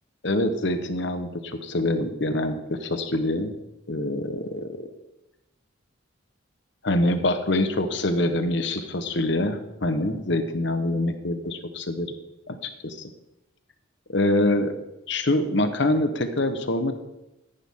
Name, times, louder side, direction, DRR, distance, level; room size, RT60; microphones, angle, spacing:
voice 1, 0.2-3.5 3.9-4.9 6.8-12.2 12.5-13.1 14.1-14.7 15.1-16.9, left 1 dB, 60° left, 9 dB, 1.1 m, -25 dB
13.5 x 11.0 x 3.7 m, 0.95 s
head